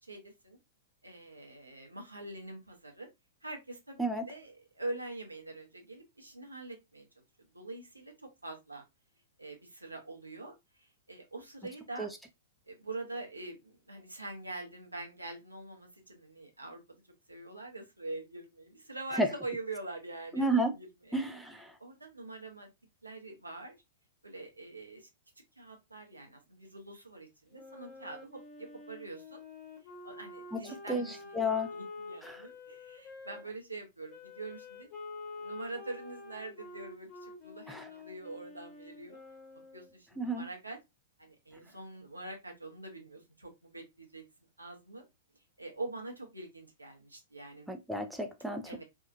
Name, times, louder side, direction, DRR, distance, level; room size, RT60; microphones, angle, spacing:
voice 1, 0.0-0.6 1.0-3.1 3.4-7.1 7.5-8.8 9.4-12.1 12.7-16.8 17.3-21.2 21.8-22.7 23.0-23.8 24.2-25.1 25.6-29.4 30.0-34.9 35.4-39.2 39.7-40.8 41.2-44.2 44.6-45.0 45.6-47.7 48.7-48.8, right 2 dB, 85° right, 0.8 m, -44 dB
voice 2, 20.3-20.7 21.1-21.7 30.5-30.6 30.9-31.1 31.3-31.7 32.2-32.4 37.7-37.9 40.2-40.4 47.7-48.8, right 1 dB, ahead, 0.4 m, -31 dB
Wind instrument woodwind instrument, 27.5-33.4 34.1-40.0, left 3 dB, 35° left, 1.1 m, -48 dB
2.7 x 2.4 x 2.5 m
figure-of-eight pair, 105°, 0 cm